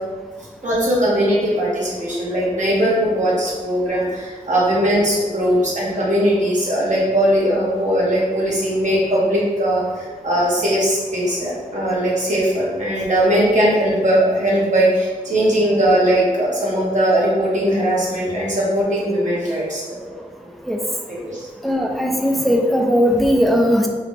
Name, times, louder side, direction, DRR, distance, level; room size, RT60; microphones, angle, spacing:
voice 1, 0.6-19.8 20.4-20.5 21.1-21.5, right 1 dB, 60° right, -6 dB, 1.2 m, -19 dB
voice 2, 21.6-23.9, equal, ahead, 1 dB, 0.4 m, -17 dB
3.1 x 3.0 x 3.2 m, 1.4 s
wide cardioid pair, 70°, 14 cm